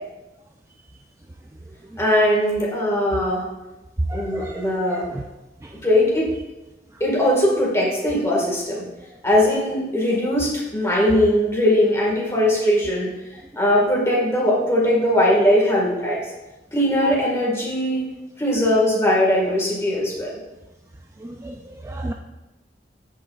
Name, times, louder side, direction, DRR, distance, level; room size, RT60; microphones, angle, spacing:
voice 1, 2.0-3.4 4.1-5.0 5.8-6.3 7.0-8.8 9.2-13.1 13.5-16.2 16.7-18.0 18.4-20.4, left 1 dB, 15° left, -4 dB, 1.8 m, -20 dB
voice 2, 4.1-5.2 5.6-5.7 21.2-22.1, right 1 dB, 15° right, 2 dB, 0.3 m, -33 dB
14.5 x 5.4 x 2.5 m, 1.1 s
head